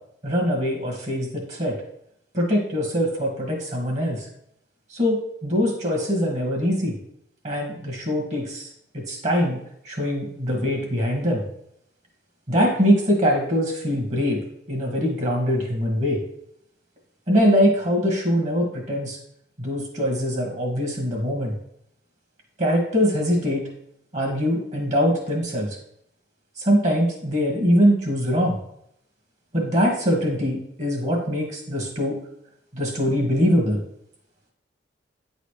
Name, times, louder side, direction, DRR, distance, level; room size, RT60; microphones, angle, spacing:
voice 1, 0.2-1.8 2.3-4.3 4.9-7.0 7.4-9.6 9.8-11.4 12.5-14.4 14.7-16.2 17.3-19.2 19.6-21.5 22.6-23.7 24.1-25.7 26.6-28.6 29.5-32.2 32.7-33.8, equal, 40° right, 0 dB, 1.6 m, -23 dB
9.2 x 4.2 x 3.2 m, 0.74 s
head